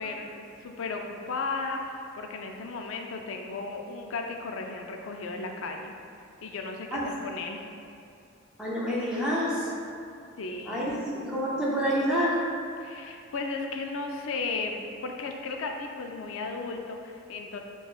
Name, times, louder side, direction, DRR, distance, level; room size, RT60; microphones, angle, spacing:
voice 1, 0.0-5.9 6.4-7.6 10.4-11.0 12.8-17.6, left 3 dB, 75° left, 3 dB, 0.4 m, -35 dB
voice 2, 8.6-9.7 10.7-12.5, equal, 5° right, -7 dB, 0.4 m, -28 dB
6.7 x 2.3 x 2.3 m, 2.5 s
head